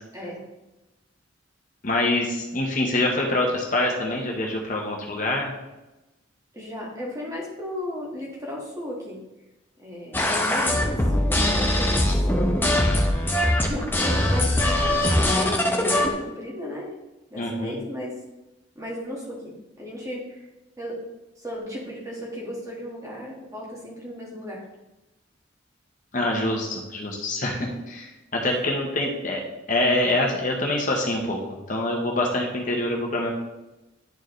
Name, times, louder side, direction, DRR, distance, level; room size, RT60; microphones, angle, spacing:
voice 1, 0.1-0.4 6.5-9.2 9.8-11.0 11.3-12.2 13.6-16.9 17.3-18.2 18.7-20.4 20.8-21.1 21.4-24.6 28.4-28.6, left 1 dB, 15° right, -4 dB, 1.8 m, -35 dB
voice 2, 1.8-5.5 17.3-17.7 26.1-29.4 29.7-31.4 31.7-33.3, left 1 dB, 45° left, 0 dB, 1.1 m, -25 dB
sound 1, 10.1-16.1, left 1 dB, 10° left, 0.8 m, -22 dB
10.5 x 4.6 x 3.2 m, 1.0 s
head